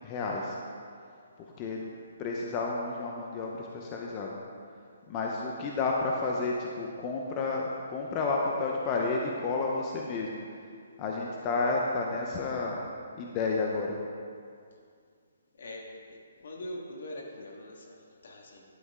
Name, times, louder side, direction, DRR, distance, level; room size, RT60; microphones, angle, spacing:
voice 1, 0.0-0.6 1.6-1.9 2.2-4.4 5.1-10.4 11.0-12.9 13.1-14.0, left 3 dB, 20° left, -1 dB, 0.7 m, -31 dB
voice 2, 15.6-15.9 16.4-18.6, left 1 dB, 65° left, 0 dB, 1.7 m, -42 dB
11.0 x 7.8 x 3.7 m, 2.2 s
hypercardioid pair, 165°, 0 cm